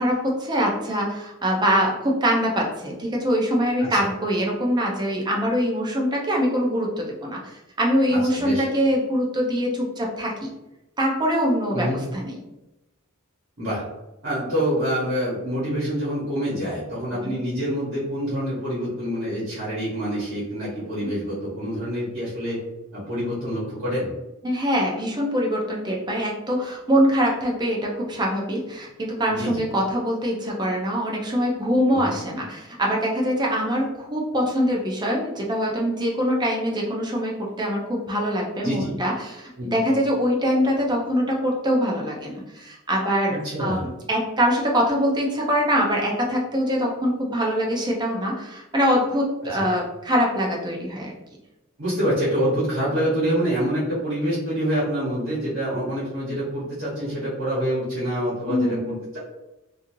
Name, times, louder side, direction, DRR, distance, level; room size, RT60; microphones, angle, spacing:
voice 1, 0.0-10.5 11.0-12.4 17.2-17.3 24.4-51.1 58.5-59.0, equal, 20° right, -2 dB, 0.6 m, -23 dB
voice 2, 8.1-8.7 11.7-12.0 13.6-13.8 14.2-22.6 22.9-24.1 29.3-29.6 31.9-32.1 38.6-38.9 39.6-39.8 43.3-43.9 49.5-49.7 51.8-59.2, equal, 60° right, -8 dB, 1.2 m, -26 dB
3.1 x 2.5 x 2.7 m, 0.96 s
head